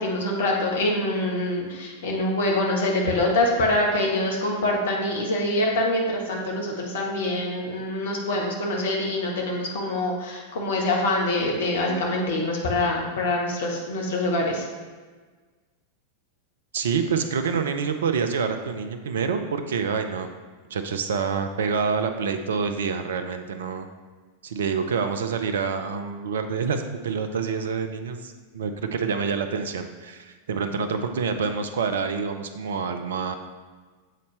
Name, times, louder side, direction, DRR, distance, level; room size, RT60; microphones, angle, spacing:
voice 1, 0.0-14.6, left 1 dB, 60° left, -1 dB, 1.2 m, -25 dB
voice 2, 16.7-20.3 20.7-23.9 24.4-33.3, right 5 dB, 60° right, 8 dB, 0.5 m, -27 dB
7.6 x 4.1 x 3.2 m, 1.4 s
figure-of-eight pair, 90°, 0 cm